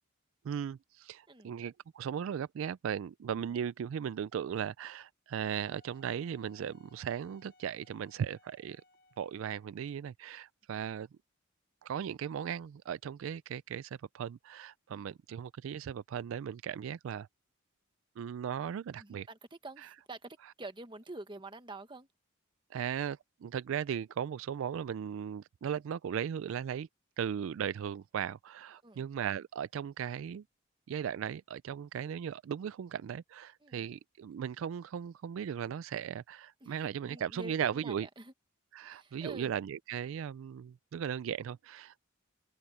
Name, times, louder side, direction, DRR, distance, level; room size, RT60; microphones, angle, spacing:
voice 1, 0.4-8.8 9.2-11.1 11.8-17.3 18.2-19.3 19.8-19.9 22.7-26.9 27.2-30.4 30.9-38.1 38.7-42.0, right 8 dB, 65° right, 0.3 m, -37 dB
Wind instrument woodwind instrument, 5.3-9.9, left 2 dB, 45° left, 1.9 m, -65 dB
voice 2, 19.0-22.1 28.8-29.1 33.6-33.8 36.6-38.3 38.9-39.5, right 2 dB, 25° right, 1.4 m, -48 dB
head